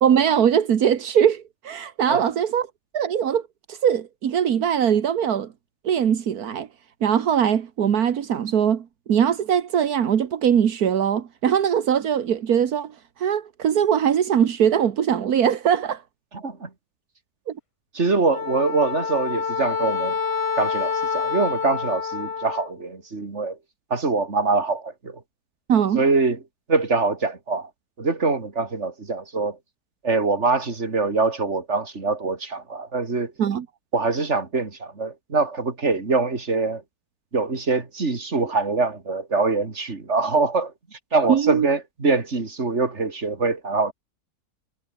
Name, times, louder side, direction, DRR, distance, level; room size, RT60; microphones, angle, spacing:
voice 1, 0.0-2.7 2.9-3.4 3.7-5.5 5.8-6.7 7.0-16.0 17.5-17.6 25.7-26.0 33.4-33.7 41.3-41.7, right 8 dB, 80° right, 1.7 m, -21 dB
voice 2, 16.3-16.7 17.9-20.2 20.6-23.6 23.9-25.2 25.9-26.4 26.7-27.7 28.0-29.6 30.0-33.3 33.9-36.8 37.3-40.7 41.1-43.9, right 3 dB, 50° right, 3.3 m, -24 dB
Wind instrument woodwind instrument, 18.3-22.7, left 6 dB, 50° left, 0.4 m, -27 dB
omnidirectional pair, 1.6 m